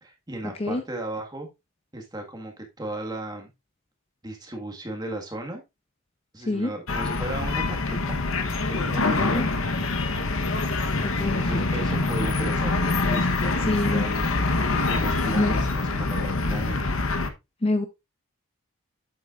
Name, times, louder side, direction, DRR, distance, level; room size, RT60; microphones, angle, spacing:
voice 1, 0.0-1.5 1.9-3.5 4.2-5.6 6.3-8.2 8.7-9.5 11.1-14.3 14.9-17.0, right 1 dB, 20° right, 3 dB, 1.7 m, -36 dB
sound 1, 6.9-17.3, left 3 dB, 70° left, 1.0 m, -25 dB
voice 2, 11.0-11.9 13.7-14.0 15.4-15.6 17.6-17.9, left 2 dB, 25° left, 8 dB, 0.6 m, -26 dB
8.9 x 7.5 x 2.5 m, 0.23 s
head